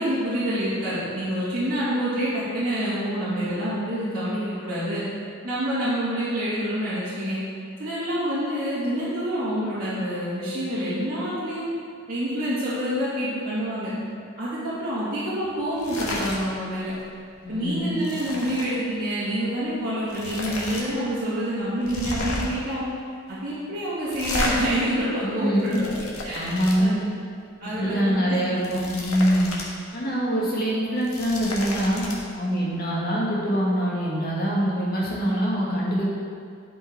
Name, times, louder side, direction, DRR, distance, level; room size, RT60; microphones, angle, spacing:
voice 1, 0.0-5.0 5.4-7.4 7.8-11.6 12.1-13.9 14.4-16.9 17.5-22.9 23.3-27.0 27.6-28.2, equal, 40° right, -12 dB, 2.3 m, -27 dB
sound 1, 15.7-16.4 16.7-17.0 17.3-18.7 19.6-19.7 20.1-20.8 21.2-21.3 21.8-22.6 24.1-24.5 25.4-26.8 28.4-29.7 30.0-30.1 30.9-32.1, left 2 dB, 80° left, 1.6 m, -32 dB
voice 2, 17.4-18.0 25.2-25.8 26.3-27.0 27.8-29.5 29.9-32.0 32.4-36.1, equal, 40° left, -5 dB, 2.0 m, -24 dB
11.0 x 5.3 x 4.6 m, 2.2 s
head